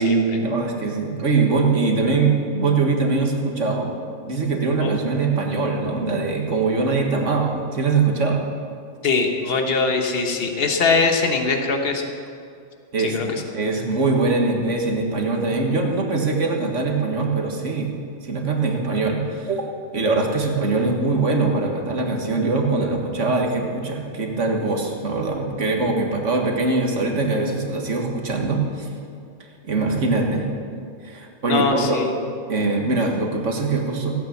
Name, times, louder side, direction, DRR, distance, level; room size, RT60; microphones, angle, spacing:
voice 1, 0.0-4.0 4.3-8.4 12.9-18.0 18.2-19.7 19.9-28.9 29.7-30.5 31.0-32.0 32.5-34.1, right 3 dB, 70° right, 1 dB, 1.9 m, -22 dB
voice 2, 9.0-12.0 13.0-13.3 31.5-32.2, left 4 dB, 50° left, 4 dB, 1.4 m, -21 dB
16.5 x 8.8 x 7.1 m, 2.4 s
omnidirectional pair, 1.3 m